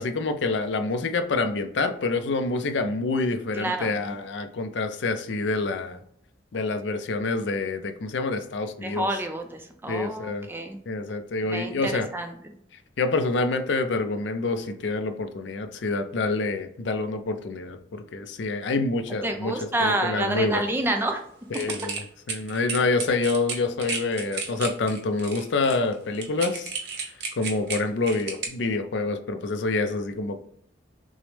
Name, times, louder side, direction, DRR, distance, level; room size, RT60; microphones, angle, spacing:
voice 1, 0.0-6.0 6.5-9.1 9.9-10.5 10.9-12.1 13.0-19.5 19.8-20.6 21.5-26.7 27.4-30.4, left 3 dB, 70° left, 8 dB, 0.5 m, -27 dB
voice 2, 3.5-3.9 8.8-10.8 11.5-12.3 19.2-21.2, right 1 dB, 10° right, 4 dB, 0.4 m, -28 dB
sound 1, 21.5-28.5, right 5 dB, 60° right, 0.8 m, -33 dB
6.1 x 2.0 x 3.2 m, 0.67 s
head